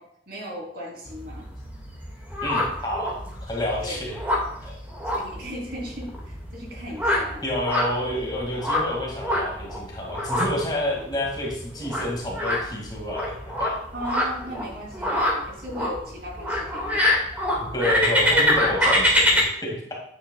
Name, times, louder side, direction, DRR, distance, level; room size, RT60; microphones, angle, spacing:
voice 1, 0.3-1.5 3.8-4.0 5.1-7.4 13.9-17.3, equal, 55° right, -2 dB, 3.4 m, -36 dB
sound 1, 1.1-19.4, left 1 dB, 10° right, 1.9 m, -26 dB
voice 2, 2.4-4.2 4.6-4.8 7.4-13.3 13.6-13.8 17.6-20.0, left 1 dB, 20° left, -2 dB, 2.2 m, -29 dB
9.5 x 9.4 x 2.3 m, 0.72 s
head